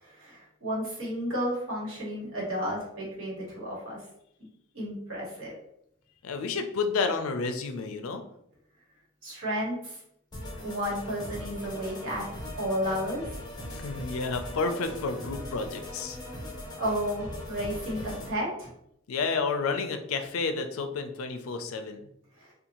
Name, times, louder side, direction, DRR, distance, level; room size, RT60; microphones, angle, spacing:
voice 1, 0.0-4.0 4.7-5.5 9.2-10.0 10.6-12.3 12.6-13.4 16.8-18.7 22.4-22.5, equal, 80° right, -5 dB, 1.2 m, -32 dB
voice 2, 6.2-8.2 13.7-16.2 19.1-22.0, left 4 dB, 85° left, 7 dB, 0.4 m, -30 dB
sound 1, 10.3-18.3, left 1 dB, 20° left, 0.7 m, -40 dB
2.6 x 2.3 x 2.9 m, 0.75 s
head